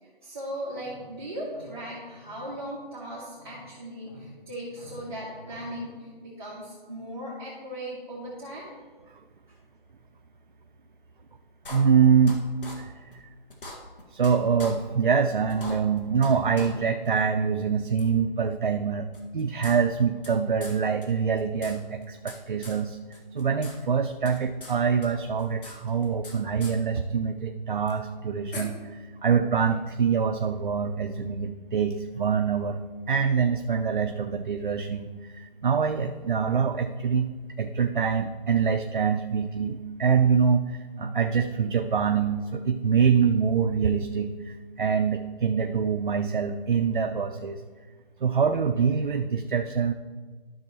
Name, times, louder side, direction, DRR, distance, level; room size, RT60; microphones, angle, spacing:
voice 1, 0.0-8.7, equal, 25° right, -9 dB, 1.8 m, -38 dB
sound 1, 11.6-12.3 12.6-12.7 13.1-13.2 13.5-14.3 14.6-14.7 15.1-15.2 15.5-16.3 16.5-16.7 17.0-17.1 18.0-18.1 19.1-20.3 20.6-20.7 21.0-21.1 21.4-22.4 22.6-22.8 23.1-23.7 24.0-24.7 25.0-26.3 26.6-26.7 27.9-28.0 28.5-28.6, left 2 dB, 60° left, 1.9 m, -41 dB
voice 2, 11.7-12.4 12.8-13.3 14.1-37.3 37.6-47.6 48.2-49.9, right 6 dB, 55° right, 6 dB, 0.5 m, -25 dB
12.5 x 6.2 x 3.0 m, 1.4 s
figure-of-eight pair, 170°, 30 cm